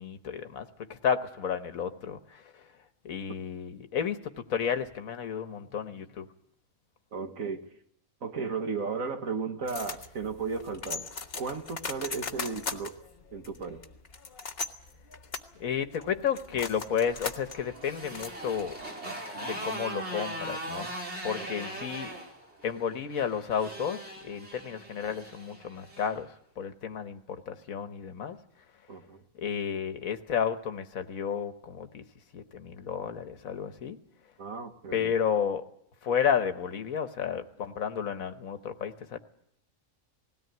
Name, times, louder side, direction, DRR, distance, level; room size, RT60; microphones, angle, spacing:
voice 1, 0.0-2.6 3.0-6.3 15.6-18.8 19.4-20.9 21.2-22.1 22.6-28.4 29.3-32.0 32.3-34.0 34.9-35.6 36.0-39.2, left 7 dB, 90° left, 8 dB, 1.6 m, -32 dB
voice 2, 7.1-7.6 8.2-11.1 11.3-12.9 13.3-13.8 21.4-21.8 28.9-29.2 34.4-35.1, right 5 dB, 80° right, 5 dB, 2.1 m, -35 dB
sound 1, 9.7-18.9, left 4 dB, 45° left, 1.4 m, -39 dB
Motorcycle, 16.7-26.1, right 1 dB, 50° right, 4.8 m, -40 dB
19.5 x 17.0 x 9.2 m, 0.72 s
omnidirectional pair, 1.4 m